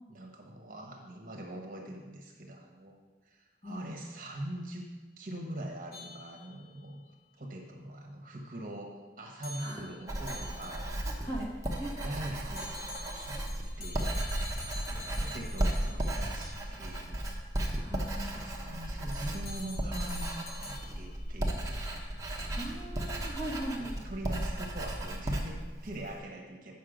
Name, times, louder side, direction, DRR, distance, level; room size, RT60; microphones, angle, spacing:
voice 1, 0.1-3.0 3.2-4.9 5.2-7.0 7.4-8.9 9.2-11.0 12.0-13.4 13.8-14.2 14.9-17.2 18.3-21.7 23.7-26.7, right 1 dB, 50° right, 0 dB, 1.2 m, -43 dB
sound 1, 5.9-6.9 9.4-11.2 12.6-16.9 17.6-17.8 19.1-21.2, left 1 dB, 60° left, 0.8 m, -47 dB
Writing, 10.1-26.2, right 1 dB, 20° right, 0.9 m, -35 dB
voice 2, 17.8-18.8 22.6-24.0, right 1 dB, 40° left, -5 dB, 2.3 m, -39 dB
8.5 x 5.7 x 5.0 m, 1.3 s
head